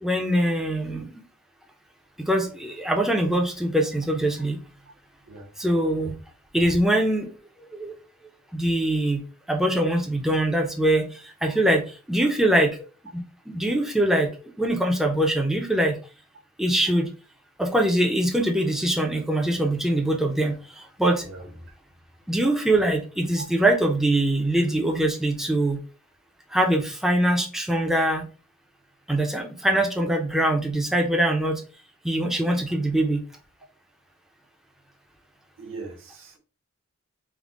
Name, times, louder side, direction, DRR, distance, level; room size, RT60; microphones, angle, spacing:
voice 1, 0.0-1.2 2.3-4.6 5.6-6.1 6.5-7.3 7.7-7.9 8.5-9.2 9.5-12.8 13.1-14.3 14.6-16.0 16.6-17.1 17.6-21.2 22.3-25.8 26.5-28.2 29.1-31.6 32.0-33.2, right 1 dB, ahead, 0.5 m, -23 dB
voice 2, 21.2-21.7 23.4-23.5 35.6-36.4, right 3 dB, 65° right, 1.2 m, -40 dB
3.6 x 2.0 x 3.6 m
head